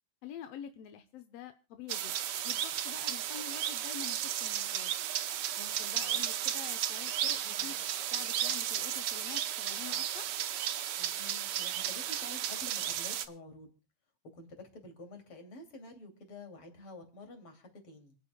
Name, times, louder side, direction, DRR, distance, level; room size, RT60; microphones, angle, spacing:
voice 1, 0.2-2.1 2.4-4.9 5.6-10.3, left 9 dB, 70° left, 8 dB, 1.6 m, -47 dB
sound 1, 1.9-13.3, right 10 dB, 70° right, 1.3 m, -34 dB
voice 2, 7.4-7.8 11.0-13.7 14.3-18.2, left 2 dB, 45° left, 5 dB, 3.4 m, -49 dB
28.0 x 9.3 x 2.2 m, 0.33 s
omnidirectional pair, 3.6 m